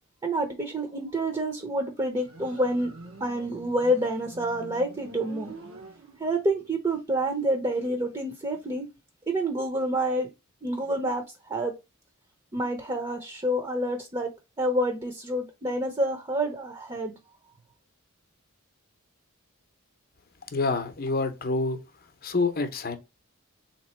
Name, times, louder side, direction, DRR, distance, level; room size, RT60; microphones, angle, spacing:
voice 1, 0.2-2.9 3.2-5.5 6.2-8.9 9.3-10.3 10.6-11.8 12.5-14.3 14.6-17.1, right 1 dB, 20° right, 0.7 m, -28 dB
Motorcycle, 2.1-6.5, right 3 dB, 70° right, 0.8 m, -46 dB
voice 2, 20.5-21.8 22.2-23.0, left 3 dB, 45° left, 0.7 m, -27 dB
3.7 x 2.9 x 4.3 m
head